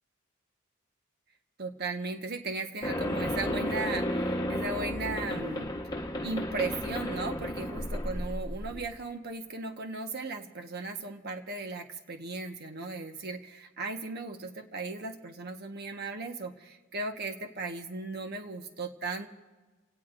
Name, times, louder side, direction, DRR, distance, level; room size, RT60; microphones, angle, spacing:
voice 1, 1.6-5.7 6.2-19.3, right 3 dB, 50° right, 5 dB, 1.4 m, -37 dB
sound 1, 2.8-8.9, equal, 20° left, 1.2 m, -33 dB
29.0 x 18.0 x 2.6 m, 1.2 s
head